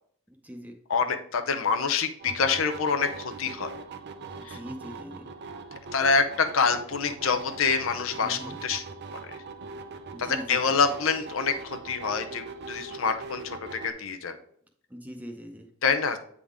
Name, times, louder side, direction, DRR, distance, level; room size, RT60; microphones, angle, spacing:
voice 1, 0.3-0.8 4.4-5.3 8.2-8.6 10.1-10.8 14.9-15.7, equal, 5° right, 3 dB, 0.7 m, -41 dB
voice 2, 0.9-3.7 4.4-4.6 5.9-8.8 10.2-14.4 15.8-16.2, left 5 dB, 70° left, 7 dB, 0.6 m, -26 dB
sound 1, 2.2-13.9, right 4 dB, 50° right, 0.6 m, -41 dB
8.4 x 3.8 x 3.5 m, 0.63 s
head